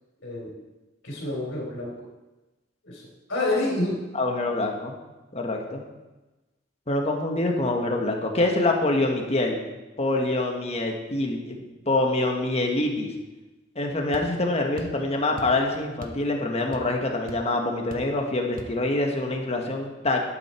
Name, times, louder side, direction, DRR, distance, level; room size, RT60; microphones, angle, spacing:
voice 1, 1.0-2.0 2.8-3.0 3.3-4.0, left 2 dB, 80° left, -4 dB, 3.6 m, -28 dB
voice 2, 4.1-4.9 5.3-5.8 6.9-9.6 10.0-13.1 13.7-20.2, left 2 dB, 35° left, 2 dB, 1.6 m, -25 dB
sound 1, 14.1-14.3 14.8-15.0 15.4-15.6 16.0-16.3 16.5-17.0 17.3-17.4 17.9-18.1 18.6-18.8, right 1 dB, 45° right, 1.1 m, -39 dB
12.0 x 9.0 x 4.5 m, 1.1 s
head